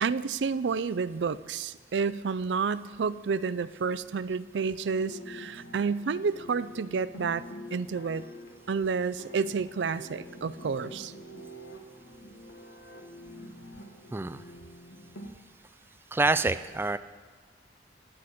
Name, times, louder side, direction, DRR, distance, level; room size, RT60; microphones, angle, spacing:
voice 1, 0.0-7.4 7.7-8.2 8.7-11.1, right 5 dB, 85° right, 16 dB, 0.4 m, -30 dB
sound 1, 5.0-15.3, equal, 85° left, 1.5 m, -46 dB
voice 2, 14.1-14.4 16.1-17.0, right 3 dB, 15° right, 12 dB, 0.3 m, -27 dB
23.0 x 7.9 x 4.3 m, 1.5 s
head